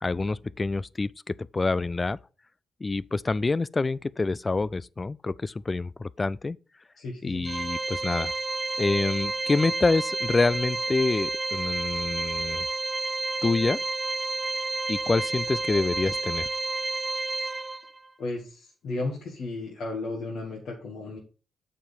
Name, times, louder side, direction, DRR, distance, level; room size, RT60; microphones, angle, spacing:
voice 1, 0.0-2.2 2.8-6.6 7.2-8.3 8.8-12.7 13.4-13.8 14.9-16.5, left 3 dB, 30° left, 0.3 m, -27 dB
voice 2, 7.0-7.5 18.2-21.2, left 2 dB, 65° left, 1.8 m, -34 dB
Organ, 7.4-18.1, right 2 dB, 25° right, 0.6 m, -30 dB
7.5 x 4.5 x 5.2 m
hypercardioid pair, 45°, 0 cm